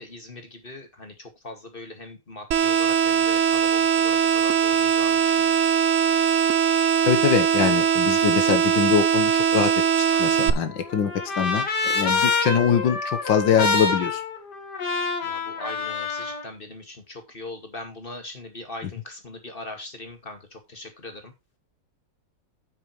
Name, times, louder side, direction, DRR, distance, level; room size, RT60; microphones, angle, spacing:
voice 1, 0.0-5.5 15.2-21.3, left 2 dB, 30° left, 5 dB, 2.3 m, -40 dB
sound 1, 2.5-10.5, right 8 dB, 55° right, 1.0 m, -21 dB
voice 2, 7.0-9.7 10.0-14.2, left 7 dB, 90° left, 9 dB, 2.0 m, -23 dB
Trumpet, 10.1-16.4, left 4 dB, 65° left, 2.5 m, -27 dB
9.0 x 8.8 x 3.2 m, 0.22 s
omnidirectional pair, 2.0 m